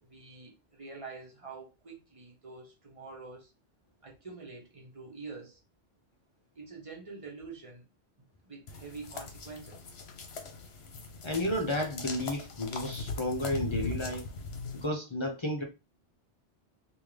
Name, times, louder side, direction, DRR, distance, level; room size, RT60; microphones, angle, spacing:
voice 1, 0.0-3.5 4.0-5.6 6.5-7.8 8.2-9.9, right 4 dB, 30° right, 1.1 m, -46 dB
sound 1, 8.7-14.9, left 3 dB, 60° left, 0.9 m, -40 dB
voice 2, 11.2-14.3 14.7-15.6, left 1 dB, 35° left, 0.5 m, -32 dB
3.6 x 2.6 x 3.2 m
omnidirectional pair, 1.2 m